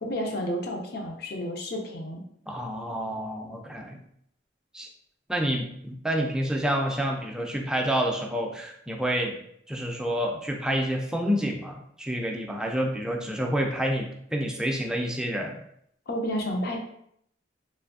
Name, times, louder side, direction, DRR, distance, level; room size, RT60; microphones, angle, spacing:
voice 1, 0.0-2.2 16.1-16.8, equal, 60° left, 2 dB, 0.6 m, -31 dB
voice 2, 2.5-4.0 4.7-4.9 5.3-9.4 9.7-15.5, equal, 5° right, 0 dB, 0.4 m, -28 dB
3.3 x 2.6 x 2.5 m, 0.70 s
head